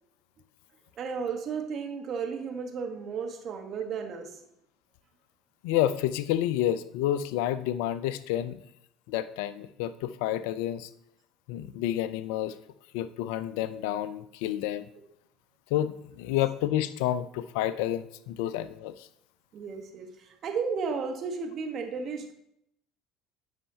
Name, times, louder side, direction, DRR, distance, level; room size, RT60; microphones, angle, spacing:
voice 1, 1.0-4.4 19.5-22.3, right 5 dB, 50° right, 4 dB, 1.2 m, -34 dB
voice 2, 5.6-8.6 9.1-10.9 11.5-12.6 12.9-14.9 15.7-19.1, left 12 dB, 75° left, 14 dB, 0.4 m, -29 dB
8.8 x 5.6 x 2.8 m, 0.76 s
hypercardioid pair, 70°, 0 cm